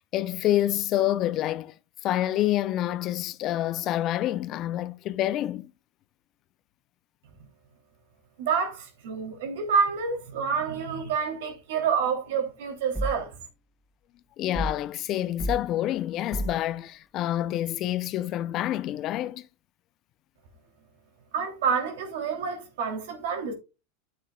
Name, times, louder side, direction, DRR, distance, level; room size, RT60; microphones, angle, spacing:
voice 1, 0.1-1.7 2.0-5.7 14.4-19.5, left 13 dB, 45° left, 0.6 m, -27 dB
voice 2, 8.4-13.3 21.3-23.5, right 6 dB, 70° right, 3.1 m, -28 dB
sound 1, 12.9-13.3 14.5-14.9 15.4-15.7 16.3-16.7, right 1 dB, ahead, 1.1 m, -31 dB
9.7 x 7.8 x 2.4 m
hypercardioid pair, 115°, 0 cm